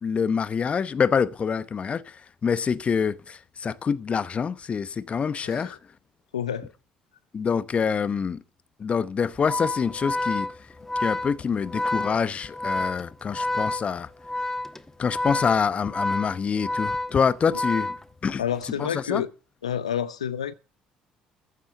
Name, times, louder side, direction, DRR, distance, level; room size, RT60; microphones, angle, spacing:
voice 1, 0.0-2.0 2.4-5.8 7.3-8.4 8.8-10.5 11.0-14.1 15.0-18.0 18.2-18.4 18.8-19.2, left 6 dB, 40° left, 1.0 m, -26 dB
voice 2, 5.4-5.8 6.3-6.7 17.5-17.6 18.4-19.3 19.6-20.5, left 9 dB, 85° left, 0.6 m, -29 dB
Organ, 9.4-18.5, left 2 dB, 10° left, 1.2 m, -30 dB
15.0 x 7.3 x 7.9 m
figure-of-eight pair, 55°, 3 cm